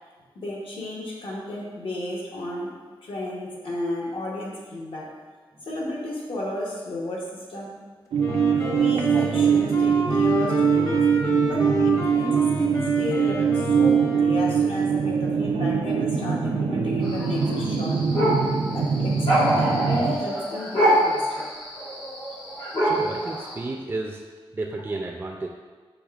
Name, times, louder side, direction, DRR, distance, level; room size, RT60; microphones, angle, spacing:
voice 1, 0.3-2.7 3.0-5.1 5.6-7.8 8.5-11.0 11.4-18.0 18.7-21.5, left 1 dB, 70° left, -3 dB, 0.9 m, -33 dB
sound 1, 8.1-20.2, right 6 dB, 90° right, 0.4 m, -22 dB
Wind instrument woodwind instrument, 8.2-14.9, left 2 dB, 30° left, 0.7 m, -31 dB
sound 2, 17.0-23.5, equal, 90° left, 1.4 m, -25 dB
voice 2, 22.8-24.2 24.5-25.5, right 2 dB, 25° right, 1 dB, 0.3 m, -32 dB
6.3 x 3.3 x 2.4 m, 1.5 s
wide cardioid pair, 95°, 9 cm